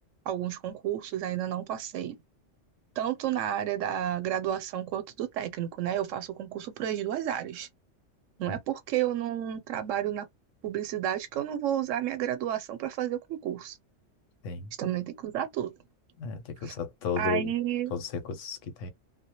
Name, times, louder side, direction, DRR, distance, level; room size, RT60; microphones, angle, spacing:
voice 1, 0.3-2.2 3.0-7.7 8.4-10.3 10.6-13.8 14.8-15.7 16.6-16.8 17.2-17.9, right 11 dB, 85° right, 1.0 m, -31 dB
voice 2, 16.2-17.5 17.9-18.9, left 6 dB, 90° left, 1.0 m, -34 dB
2.2 x 2.0 x 2.8 m
omnidirectional pair, 1.3 m